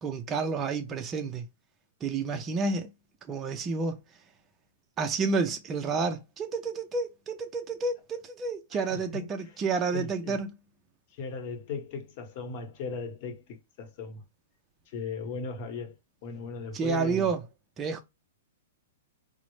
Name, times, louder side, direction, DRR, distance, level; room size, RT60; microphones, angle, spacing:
voice 1, 0.0-1.5 2.0-2.9 3.2-4.0 5.0-10.6 16.7-17.4 17.8-18.0, right 4 dB, 20° right, 0.4 m, -30 dB
voice 2, 8.7-9.3 9.9-10.4 11.1-14.2 14.9-16.0 16.2-17.3, left 4 dB, 45° left, 1.0 m, -37 dB
3.9 x 2.0 x 3.1 m
hypercardioid pair, 135°, 0 cm